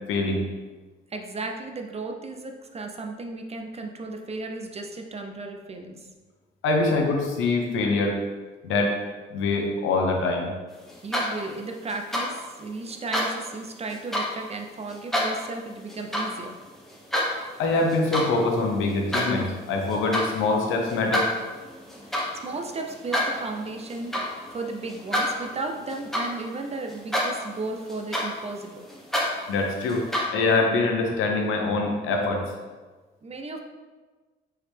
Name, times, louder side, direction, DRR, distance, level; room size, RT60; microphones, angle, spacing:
voice 1, 0.1-0.4 6.6-8.2 8.6-8.9 9.3-10.5 17.6-21.3 29.5-30.0 30.3-32.4, left 3 dB, 90° left, 1 dB, 0.8 m, -24 dB
voice 2, 1.1-6.0 11.0-16.5 22.1-24.2 24.5-28.8 33.2-33.6, right 3 dB, 30° right, 3 dB, 0.6 m, -35 dB
sound 1, 10.9-11.5 11.9-12.3 12.9-13.3 13.9-14.3 14.9-15.3 15.9-16.3 16.7-17.3 17.8-18.3 18.6-19.3 19.9-20.3 20.9-26.6 26.9-27.5 27.9-30.2, equal, ahead, 1.1 m, -28 dB
4.7 x 3.2 x 3.3 m, 1.3 s
cardioid pair, 90°, 20 cm